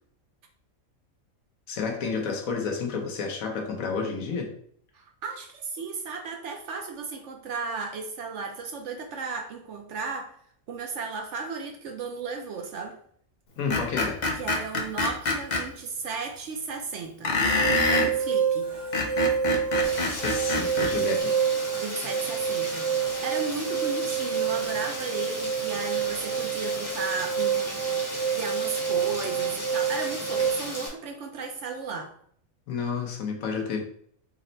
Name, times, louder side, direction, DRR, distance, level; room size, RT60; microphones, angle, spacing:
voice 1, 1.7-4.5 13.6-14.2 20.0-21.4 32.7-33.8, left 5 dB, 80° left, 2 dB, 1.2 m, -30 dB
voice 2, 4.9-10.3 10.7-13.0 14.4-17.4 17.9-18.7 21.8-32.1, right 4 dB, 65° right, 4 dB, 0.8 m, -35 dB
Screech, 13.7-15.6 17.2-18.1 18.8-20.9, left 3 dB, 50° left, 0.5 m, -25 dB
sound 1, 17.5-30.5, right 7 dB, 85° right, 1.4 m, -28 dB
Rain, 19.8-30.9, left 1 dB, 15° left, 0.8 m, -37 dB
4.1 x 2.1 x 3.9 m, 0.62 s
omnidirectional pair, 1.4 m